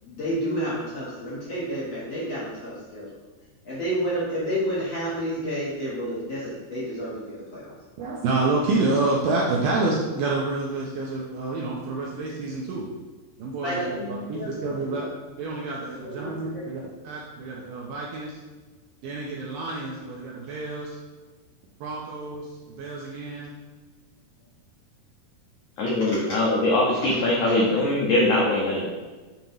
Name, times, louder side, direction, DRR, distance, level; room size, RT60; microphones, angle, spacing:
voice 1, 0.0-3.2 3.6-7.7 13.6-15.1 16.0-16.7 26.0-26.4 27.4-27.5, equal, 65° left, -9 dB, 1.6 m, -30 dB
voice 2, 8.0-12.9 13.4-15.1 15.4-18.4 19.0-21.0 21.8-23.5, right 3 dB, 80° right, -3 dB, 2.0 m, -28 dB
voice 3, 25.8-28.9, left 1 dB, 85° left, -3 dB, 1.7 m, -22 dB
7.4 x 2.9 x 5.3 m, 1.3 s
omnidirectional pair, 4.7 m